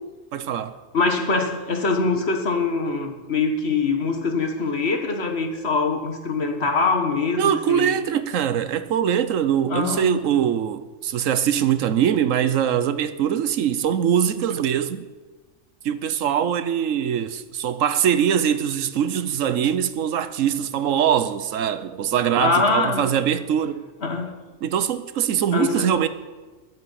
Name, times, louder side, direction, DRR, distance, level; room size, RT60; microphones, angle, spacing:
voice 1, 0.3-0.7 7.4-15.0 15.8-23.9 24.6-26.1, right 9 dB, 85° right, 1.1 m, -22 dB
voice 2, 0.9-7.9 9.7-10.3 22.4-23.1 24.0-24.4 25.5-26.0, left 4 dB, 55° left, 1.8 m, -23 dB
21.5 x 7.8 x 5.7 m
omnidirectional pair, 1.3 m